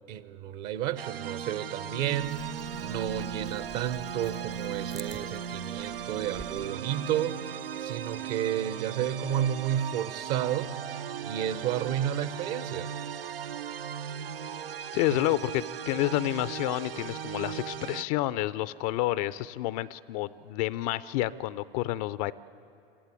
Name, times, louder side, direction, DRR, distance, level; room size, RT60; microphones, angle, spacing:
voice 1, 0.1-2.5 2.8-7.4 7.8-10.7 11.2-12.9 15.1-15.2, right 11 dB, 45° right, 14 dB, 1.0 m, -31 dB
sound 1, 1.0-18.0, right 8 dB, 75° right, 0.5 m, -37 dB
sound 2, 2.1-6.7, right 3 dB, 10° right, 0.6 m, -50 dB
voice 2, 14.9-22.3, left 16 dB, 40° left, 17 dB, 0.5 m, -29 dB
27.0 x 14.5 x 8.5 m, 2.6 s
figure-of-eight pair, 80°, 29 cm